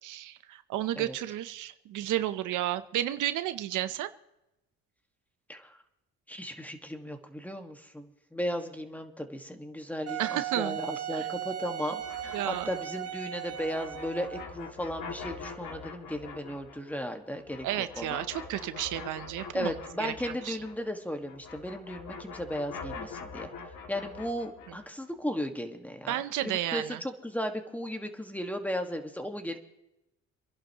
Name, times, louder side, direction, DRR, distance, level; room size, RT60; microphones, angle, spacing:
voice 1, 0.0-4.1 10.2-10.8 11.1-11.3 12.3-12.7 17.6-20.1 20.4-20.6 26.1-27.0, right 13 dB, 85° right, 12 dB, 0.8 m, -32 dB
voice 2, 6.3-18.2 19.5-23.5 23.9-29.6, equal, 5° left, 5 dB, 1.7 m, -36 dB
Wind instrument woodwind instrument, 10.1-14.6, right 12 dB, 50° right, 1.5 m, -37 dB
sound 1, 12.0-20.9 21.2-24.9, left 4 dB, 80° left, 2.5 m, -44 dB
27.0 x 11.0 x 3.0 m, 0.89 s
cardioid pair, 90°, 30 cm